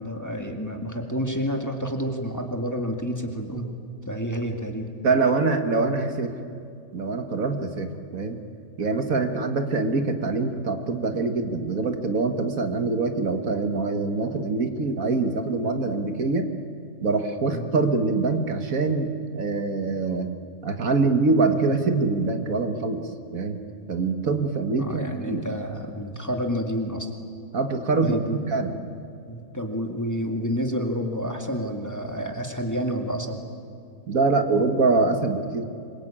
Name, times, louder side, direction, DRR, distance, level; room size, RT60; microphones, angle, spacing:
voice 1, 0.0-3.7 4.1-4.9 17.5-17.7 24.8-27.1 28.0-28.5 29.3-33.4, equal, 10° left, 3 dB, 2.1 m, -29 dB
voice 2, 5.0-6.3 6.9-8.4 8.8-16.5 17.0-20.3 20.6-23.6 23.9-25.5 27.5-28.8 34.1-35.7, right 3 dB, 65° right, 6 dB, 2.0 m, -24 dB
26.0 x 23.5 x 8.8 m, 2.6 s
omnidirectional pair, 1.6 m